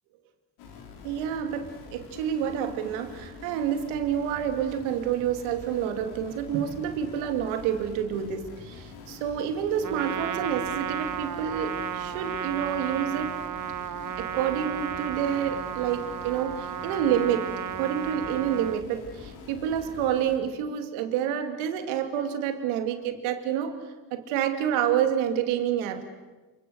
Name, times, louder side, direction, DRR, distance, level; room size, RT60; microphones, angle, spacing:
sound 1, 0.6-20.4, left 4 dB, 80° left, 4.4 m, -45 dB
voice 1, 1.0-13.3 14.2-17.5 17.8-23.8 24.1-26.0, right 9 dB, 85° right, 7 dB, 2.6 m, -28 dB
Trumpet, 9.8-18.8, right 9 dB, 40° right, 0.9 m, -33 dB
27.5 x 25.0 x 8.0 m, 1.2 s
hypercardioid pair, 55°, 47 cm